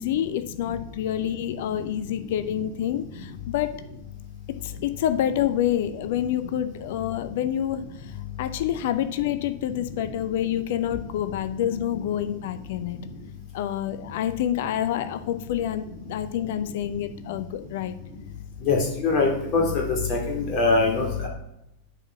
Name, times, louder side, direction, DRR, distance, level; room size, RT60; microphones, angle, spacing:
voice 1, 0.0-3.7 4.6-13.0 13.5-18.0, left 10 dB, 55° left, 11 dB, 0.6 m, -27 dB
voice 2, 18.7-19.8 20.1-21.3, left 3 dB, 40° left, -1 dB, 2.7 m, -22 dB
8.8 x 4.7 x 6.0 m, 0.85 s
figure-of-eight pair, 90°, 0 cm